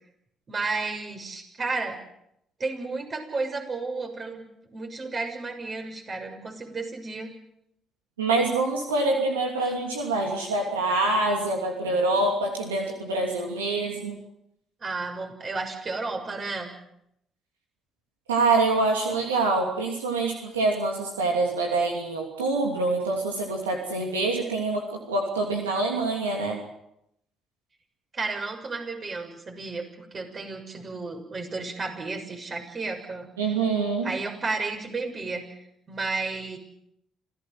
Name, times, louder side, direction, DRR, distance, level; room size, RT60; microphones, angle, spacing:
voice 1, 0.5-2.0 2.6-4.5 4.7-7.3 14.8-16.7 28.1-33.3 34.0-35.5 35.9-36.6, right 3 dB, 40° right, 4 dB, 6.7 m, -32 dB
voice 2, 8.2-14.2 18.3-26.6 33.4-34.1, right 3 dB, 90° right, 1 dB, 2.9 m, -25 dB
27.5 x 16.5 x 7.9 m, 0.78 s
hypercardioid pair, 45°, 0 cm